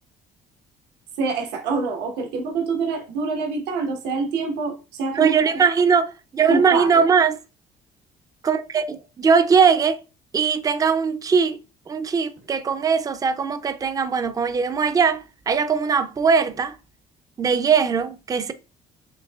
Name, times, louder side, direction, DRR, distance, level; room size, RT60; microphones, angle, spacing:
voice 1, 1.2-5.6 6.5-7.0, right 4 dB, 85° right, 1.2 m, -26 dB
voice 2, 5.1-7.4 8.4-10.0 10.3-11.6 11.9-16.7 17.4-18.5, right 6 dB, 20° right, 0.4 m, -20 dB
7.0 x 2.7 x 2.3 m
cardioid pair, 110°, 17 cm